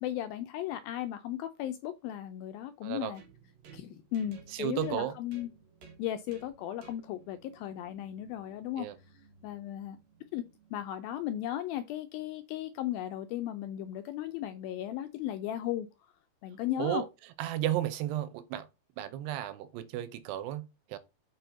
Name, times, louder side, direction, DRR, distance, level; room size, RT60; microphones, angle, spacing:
voice 1, 0.0-3.2 3.7-5.5 6.0-8.9 9.4-10.0 10.3-10.4 10.7-15.9 16.4-17.0, left 12 dB, 80° left, 2.2 m, -36 dB
voice 2, 2.8-3.1 4.5-5.1 8.8-9.0 16.8-17.1 17.4-18.7 19.0-21.0, right 12 dB, 90° right, 2.9 m, -33 dB
sound 1, 3.1-10.9, right 5 dB, 50° right, 2.6 m, -57 dB
6.9 x 5.9 x 5.1 m
omnidirectional pair, 4.6 m